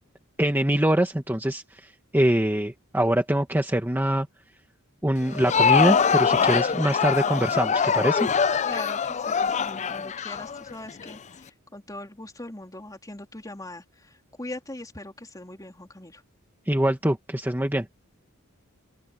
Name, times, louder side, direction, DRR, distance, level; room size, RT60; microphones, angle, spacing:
voice 1, 0.4-4.3 5.0-8.3 16.7-17.9, right 1 dB, 10° right, 1.4 m, -24 dB
Crowd, 5.2-11.1, left 6 dB, 35° left, 0.5 m, -23 dB
voice 2, 8.6-16.2, left 1 dB, 15° left, 3.5 m, -41 dB
head